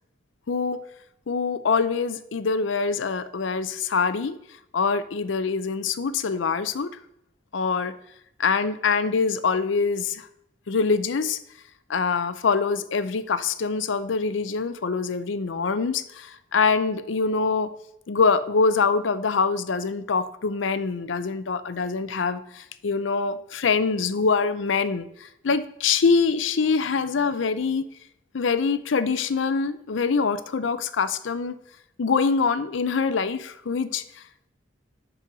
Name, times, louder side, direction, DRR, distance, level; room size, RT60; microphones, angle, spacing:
voice 1, 0.5-0.8 1.3-4.4 4.7-6.9 7.5-7.9 8.4-10.3 10.7-11.4 11.9-17.7 18.1-27.9 28.3-31.6 32.0-34.0, left 5 dB, 85° left, 13 dB, 0.5 m, -24 dB
5.6 x 5.3 x 6.1 m, 0.76 s
head